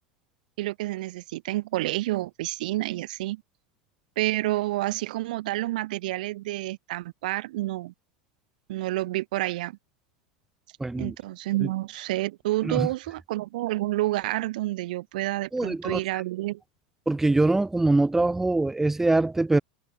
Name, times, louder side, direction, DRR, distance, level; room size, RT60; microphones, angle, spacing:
voice 1, 0.6-3.4 4.2-7.9 8.7-9.8 11.0-16.6, right 17 dB, 75° right, 2.0 m, -29 dB
voice 2, 10.8-11.1 12.6-12.9 15.5-16.0 17.1-19.6, right 2 dB, 10° right, 1.2 m, -23 dB
supercardioid pair, 120°, 4 cm